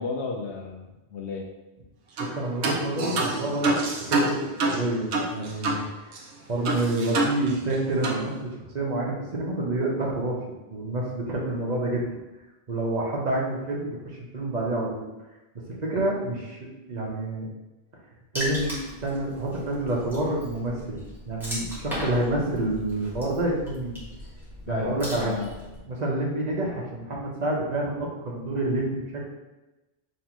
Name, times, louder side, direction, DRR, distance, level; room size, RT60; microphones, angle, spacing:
voice 1, 0.0-1.5 24.7-25.5, left 4 dB, 80° left, 0 dB, 0.9 m, -33 dB
voice 2, 2.2-5.0 5.3-6.2 6.5-8.4 8.7-10.4 10.7-12.2 12.7-15.0 15.5-17.5 18.3-23.9 24.7-25.3 25.9-29.2, right 1 dB, 40° right, -2 dB, 1.0 m, -28 dB
sound 1, 2.2-2.3 2.6-5.8 6.1-6.2 6.6-7.7 8.0-8.2, right 2 dB, 75° right, 1.0 m, -26 dB
Water / Splash splatter, 18.4-25.8, equal, ahead, 1.3 m, -38 dB
5.4 x 3.0 x 3.0 m, 1.1 s
omnidirectional pair, 1.1 m